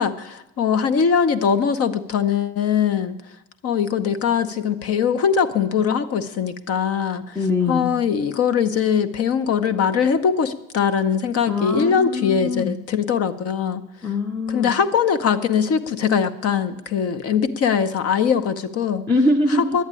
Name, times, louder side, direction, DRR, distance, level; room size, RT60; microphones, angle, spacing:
voice 1, 0.0-3.2 3.6-7.4 7.7-13.8 14.5-19.0 19.5-19.8, left 7 dB, 45° left, 10 dB, 0.8 m, -21 dB
voice 2, 7.4-7.9 11.5-12.8 14.0-14.7 19.1-19.8, left 2 dB, 5° left, 6 dB, 0.5 m, -22 dB
11.0 x 8.7 x 9.7 m, 0.95 s
cardioid pair, 165°, 33 cm